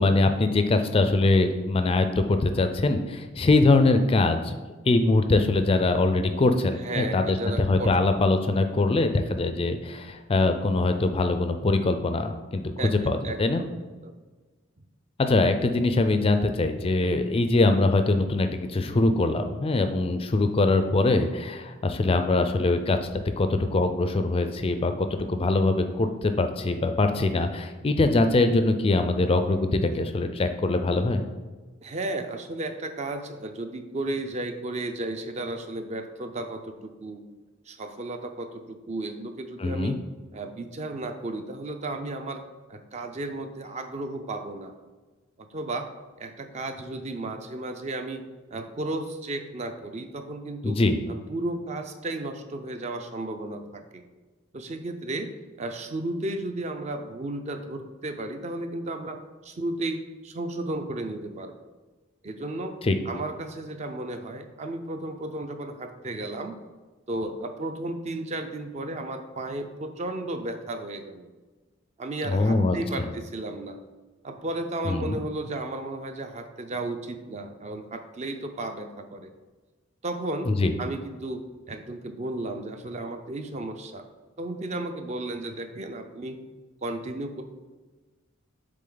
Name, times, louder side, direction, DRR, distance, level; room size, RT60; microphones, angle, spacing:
voice 1, 0.0-4.5 4.9-12.6 13.0-13.6 15.2-23.1 23.4-31.2 39.6-39.9 50.6-51.0 62.8-63.0 72.2-72.8 74.8-75.2 80.5-80.7, left 2 dB, 30° left, 7 dB, 0.4 m, -23 dB
voice 2, 6.8-7.9 12.8-13.7 14.0-14.2 31.8-37.2 37.7-40.0 40.3-42.4 42.7-44.7 45.4-45.9 46.2-48.2 48.5-50.8 51.1-54.0 54.5-55.3 55.6-61.6 62.2-62.8 63.1-66.5 67.1-71.3 72.0-73.8 74.2-79.3 80.0-84.0 84.4-86.4 86.8-87.4, right 2 dB, 35° right, 7 dB, 0.5 m, -34 dB
7.6 x 3.5 x 3.8 m, 1.3 s
head